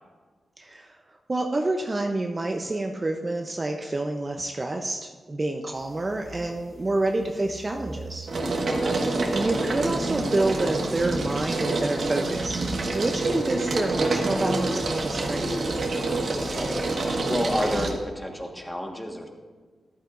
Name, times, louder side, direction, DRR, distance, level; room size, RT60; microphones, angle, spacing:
voice 1, 0.6-1.0 1.3-8.3 9.3-12.6 12.9-15.7, right 2 dB, 30° right, 3 dB, 0.7 m, -28 dB
sound 1, 5.9-6.4 6.8-17.9, right 2 dB, 65° right, 1.5 m, -27 dB
voice 2, 8.6-9.2 16.3-19.3, equal, 5° left, 2 dB, 1.5 m, -31 dB
14.0 x 11.0 x 2.6 m, 1.5 s
cardioid pair, 85°, 0 cm